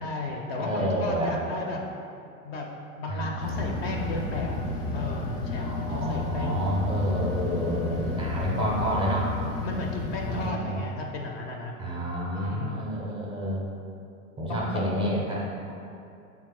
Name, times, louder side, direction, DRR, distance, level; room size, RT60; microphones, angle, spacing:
voice 1, 0.0-1.8 2.5-2.7 3.0-4.6 4.9-6.5 9.6-11.7 12.3-12.9 14.5-14.8, left 2 dB, 45° left, 1 dB, 0.5 m, -34 dB
voice 2, 0.6-1.3 3.1-3.5 5.6-9.3 10.3-10.8 11.8-13.6 14.4-15.7, right 1 dB, 10° right, -4 dB, 0.5 m, -29 dB
sound 1, 3.4-10.5, left 3 dB, 85° left, 0.7 m, -32 dB
3.6 x 2.9 x 3.9 m, 2.5 s
hypercardioid pair, 95°, 44 cm